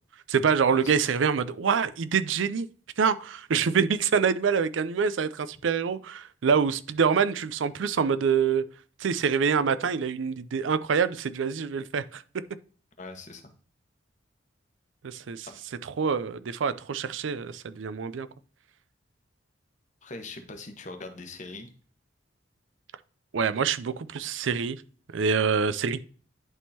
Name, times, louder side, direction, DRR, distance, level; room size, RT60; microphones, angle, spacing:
voice 1, 0.3-2.7 3.0-8.6 9.0-12.2 15.0-15.5 15.8-18.3 23.3-24.8 25.1-26.0, right 6 dB, 85° right, 0.5 m, -26 dB
voice 2, 13.0-13.5 15.5-15.6 20.0-21.7, left 3 dB, 40° left, 1.0 m, -41 dB
11.0 x 3.7 x 2.8 m
head